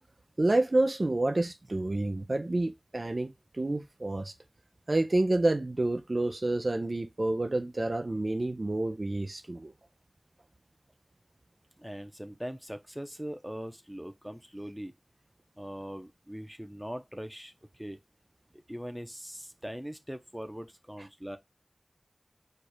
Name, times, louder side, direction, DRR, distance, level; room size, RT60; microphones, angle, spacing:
voice 1, 0.4-4.3 4.9-9.7, right 2 dB, 60° right, 0.5 m, -29 dB
voice 2, 11.8-14.9 15.6-18.0 18.7-21.4, equal, 10° right, 0.8 m, -41 dB
4.5 x 2.5 x 4.8 m
wide cardioid pair, 55°, 0 cm